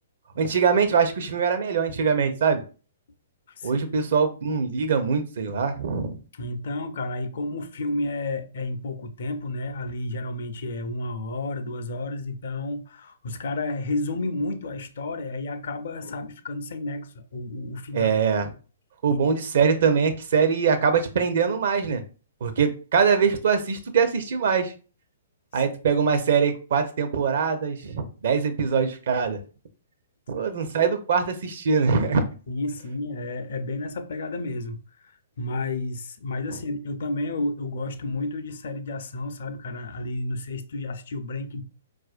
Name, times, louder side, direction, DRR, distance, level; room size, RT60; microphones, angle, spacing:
voice 1, 0.4-2.6 3.6-6.2 17.9-18.5 19.0-22.0 22.4-24.7 25.5-29.4 30.3-32.3, right 6 dB, 60° right, 0.6 m, -23 dB
voice 2, 3.6-4.0 6.3-18.1 19.1-19.2 25.5-25.6 32.5-35.1 35.4-41.6, left 2 dB, 60° left, 0.5 m, -31 dB
4.2 x 2.4 x 2.4 m
figure-of-eight pair, 120°, 0 cm